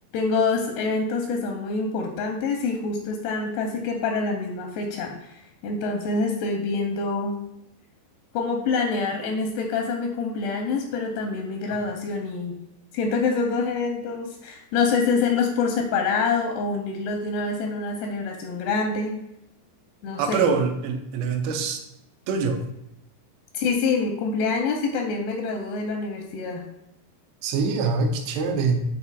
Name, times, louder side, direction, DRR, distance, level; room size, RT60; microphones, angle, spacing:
voice 1, 0.1-5.3 5.6-7.4 8.3-12.6 12.9-19.2 20.0-20.5 23.5-26.6, left 4 dB, 85° left, 2 dB, 2.4 m, -26 dB
voice 2, 20.2-21.8 22.3-22.6 27.4-28.8, right 5 dB, 80° right, 3 dB, 2.6 m, -24 dB
9.8 x 4.2 x 2.4 m, 0.83 s
omnidirectional pair, 5.1 m